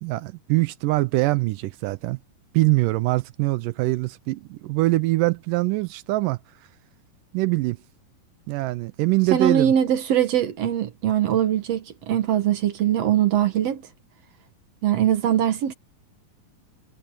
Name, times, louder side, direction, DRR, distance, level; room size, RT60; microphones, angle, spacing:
voice 1, 0.0-2.2 2.5-6.4 7.3-7.8 8.5-9.7, right 20 dB, 80° right, 2.1 m, -23 dB
voice 2, 9.3-13.8 14.8-15.7, right 10 dB, 60° right, 1.9 m, -22 dB
omnidirectional pair, 4.0 m